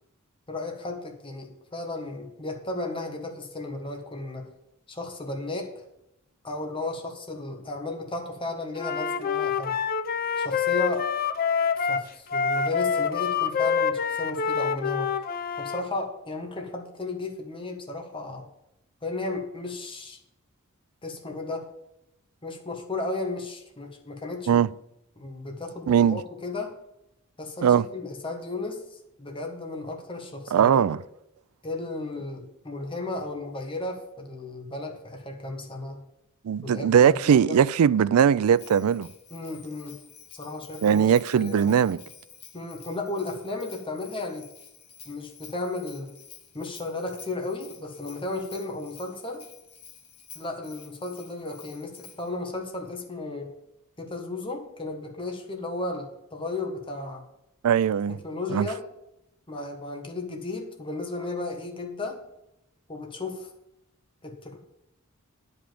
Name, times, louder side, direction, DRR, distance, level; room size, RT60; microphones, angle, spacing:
voice 1, 0.5-4.5 4.9-5.7 6.4-9.8 10.4-11.1 11.7-15.2 15.6-18.5 19.0-20.2 21.0-21.7 22.4-24.6 25.2-26.7 27.4-30.8 31.6-36.0 36.6-37.6 39.3-40.0 40.3-41.1 41.4-41.8 42.5-44.5 45.0-46.2 46.5-49.4 50.3-53.5 54.0-57.2 58.1-58.8 59.5-62.2 62.9-63.5 64.2-64.6, left 2 dB, 25° left, 1.5 m, -34 dB
Wind instrument woodwind instrument, 8.8-15.8, left 6 dB, 40° left, 0.5 m, -26 dB
voice 2, 25.9-26.2 27.6-27.9 30.5-31.0 36.4-39.1 40.8-42.0 57.6-58.2 58.5-58.7, right 8 dB, 80° right, 0.3 m, -20 dB
Bell, 38.5-52.4, left 8 dB, 80° left, 1.7 m, -50 dB
10.0 x 5.3 x 7.7 m
head